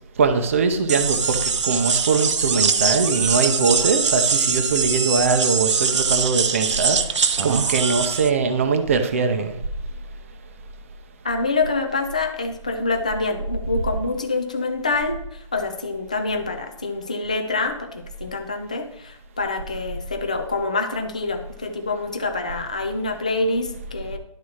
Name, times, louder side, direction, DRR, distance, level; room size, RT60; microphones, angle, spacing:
voice 1, 0.2-7.0 7.4-9.6, right 4 dB, 25° right, 7 dB, 0.6 m, -21 dB
sound 1, 0.9-8.3, right 5 dB, 60° right, 0.8 m, -22 dB
voice 2, 11.2-24.2, left 3 dB, 15° left, 5 dB, 0.3 m, -26 dB
11.0 x 4.2 x 6.3 m, 0.82 s
hypercardioid pair, 175°, 17 cm